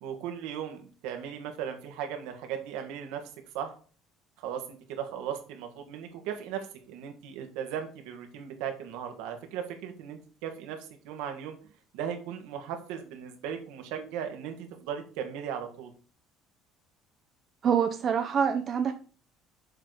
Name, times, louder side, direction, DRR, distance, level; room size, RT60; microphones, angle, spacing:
voice 1, 0.0-3.2 3.5-3.7 4.4-11.6 11.9-15.9, right 8 dB, 85° right, 5 dB, 1.6 m, -37 dB
voice 2, 17.6-18.9, right 7 dB, 40° right, 5 dB, 0.6 m, -25 dB
7.2 x 3.9 x 4.8 m, 0.40 s
cardioid pair, 120°, 0 cm